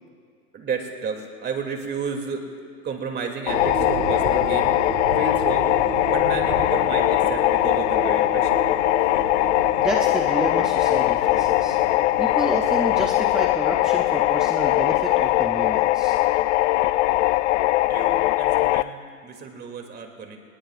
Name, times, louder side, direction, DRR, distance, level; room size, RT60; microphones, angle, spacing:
voice 1, 0.5-2.4 2.8-4.7 5.2-5.7 6.1-8.6 17.9-20.4, right 5 dB, 20° right, 3 dB, 2.5 m, -32 dB
sound 1, 3.5-18.8, left 17 dB, 50° left, 0.5 m, -21 dB
sound 2, 3.5-13.1, right 6 dB, 75° right, 2.5 m, -33 dB
voice 2, 9.8-11.8 12.2-16.2, right 1 dB, ahead, 0 dB, 0.3 m, -30 dB
27.5 x 20.0 x 2.4 m, 2.2 s
hypercardioid pair, 120°, 45 cm